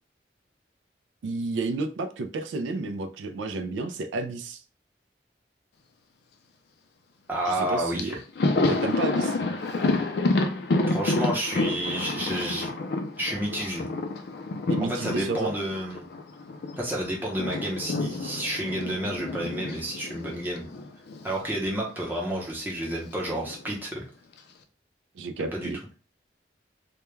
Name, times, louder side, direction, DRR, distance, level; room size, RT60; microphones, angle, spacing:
voice 1, 1.2-4.6 7.5-8.2 8.7-9.4 14.7-15.5 25.2-25.8, right 3 dB, 85° right, 8 dB, 0.3 m, -31 dB
voice 2, 7.3-8.2 10.9-12.7 13.2-13.9 14.5-16.0 16.8-20.7 21.2-24.0 25.5-25.7, right 1 dB, 10° right, -3 dB, 0.7 m, -30 dB
Thunder, 7.6-7.7 8.0-16.8 17.1-21.4 21.6-21.8 23.0-23.7, left 2 dB, 65° left, 0.4 m, -29 dB
2.2 x 2.2 x 3.1 m, 0.35 s
head